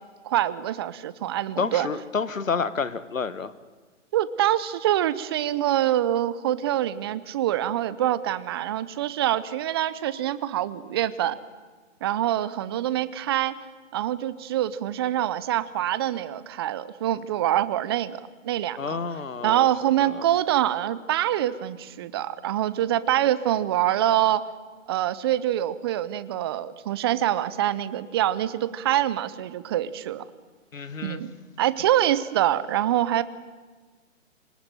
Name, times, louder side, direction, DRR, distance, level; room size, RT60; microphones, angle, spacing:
voice 1, 0.2-1.9 4.1-11.4 12.0-13.5 13.9-19.0 19.4-24.4 24.9-30.2 31.0-31.3 31.6-33.2, right 12 dB, 20° right, 16 dB, 0.7 m, -25 dB
voice 2, 1.6-3.5 18.8-19.7 20.1-20.3 30.7-31.2, left 5 dB, 85° left, 14 dB, 1.6 m, -29 dB
26.0 x 18.5 x 9.2 m, 1.4 s
hypercardioid pair, 145°, 39 cm